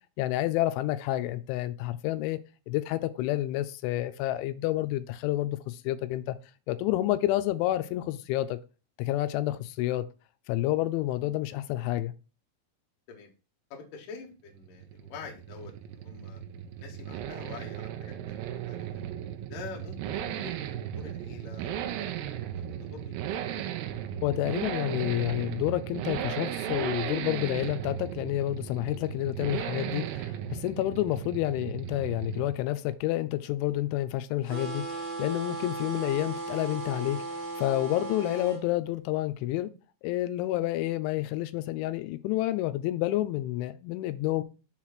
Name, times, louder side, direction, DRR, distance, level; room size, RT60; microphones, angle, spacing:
voice 1, 0.2-2.4 2.7-6.4 6.7-8.6 9.0-10.0 10.5-12.1 24.2-39.7 40.0-44.4, left 15 dB, 85° left, 2.9 m, -29 dB
voice 2, 13.7-16.4 16.8-18.9 19.5-22.1 22.4-23.2, left 5 dB, 65° left, 2.4 m, -46 dB
Accelerating revving vroom, 14.5-32.7 32.9-33.0, right 10 dB, 90° right, 2.4 m, -36 dB
sound 1, 34.5-38.6, right 3 dB, 70° right, 1.3 m, -36 dB
7.1 x 3.1 x 5.7 m
omnidirectional pair, 5.4 m